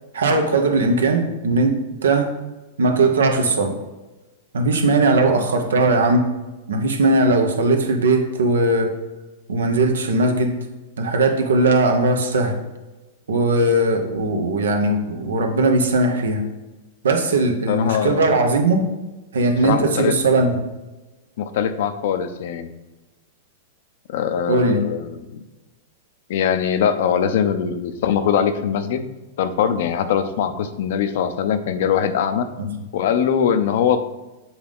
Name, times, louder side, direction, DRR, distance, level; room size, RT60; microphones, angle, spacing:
voice 1, 0.1-2.3 2.8-3.8 4.5-6.3 6.7-9.0 9.5-10.5 11.0-12.6 13.3-16.4 17.0-18.9 19.3-20.5 24.5-24.8 32.6-32.7, right 2 dB, 85° right, 5 dB, 0.9 m, -19 dB
voice 2, 17.7-18.4 19.6-20.2 21.4-22.7 24.1-25.4 26.3-29.1 29.4-32.5 32.9-34.0, left 8 dB, 65° left, 10 dB, 0.6 m, -22 dB
7.1 x 3.7 x 3.6 m, 1.1 s
hypercardioid pair, 115°, 0 cm